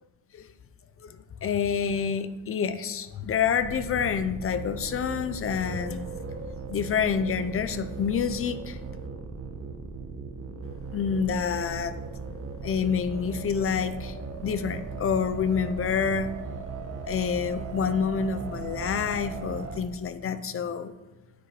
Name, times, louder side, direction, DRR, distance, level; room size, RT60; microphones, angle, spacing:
voice 1, 1.0-6.2 6.7-8.8 10.9-11.9 12.6-16.3 17.0-20.9, left 7 dB, 30° left, 12 dB, 0.6 m, -28 dB
sound 1, 3.6-19.8, right 4 dB, 35° right, 1.1 m, -38 dB
9.8 x 8.2 x 4.8 m, 1.1 s
cardioid pair, 155°, 43 cm